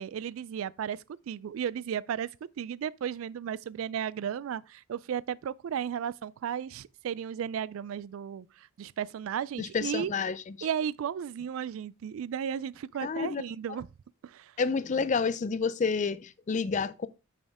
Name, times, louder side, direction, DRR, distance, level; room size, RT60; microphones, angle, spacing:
voice 1, 0.0-2.3 2.6-10.1 10.6-13.9 14.2-14.5, right 8 dB, 65° right, 0.3 m, -34 dB
voice 2, 9.6-10.7 13.0-13.4 14.6-17.1, left 5 dB, 35° left, 0.4 m, -29 dB
6.4 x 6.4 x 3.5 m
head